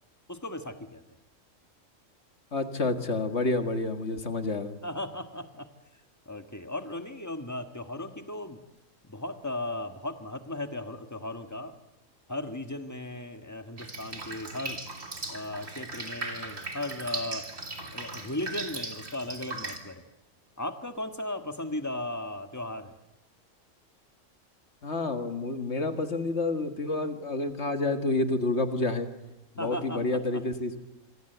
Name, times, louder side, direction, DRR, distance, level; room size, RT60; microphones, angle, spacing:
voice 1, 0.3-1.0 4.8-5.7 6.2-8.6 9.1-11.8 12.3-14.8 15.3-17.4 17.9-20.0 20.6-22.9 29.6-30.0 30.3-30.4, left 1 dB, 15° left, 7 dB, 1.5 m, -36 dB
voice 2, 2.5-4.8 24.8-29.1 29.6-30.8, left 2 dB, 60° left, 7 dB, 2.1 m, -29 dB
Drip, 13.8-19.8, right 3 dB, 75° right, 3.6 m, -38 dB
26.0 x 26.0 x 8.1 m, 0.95 s
omnidirectional pair, 1.3 m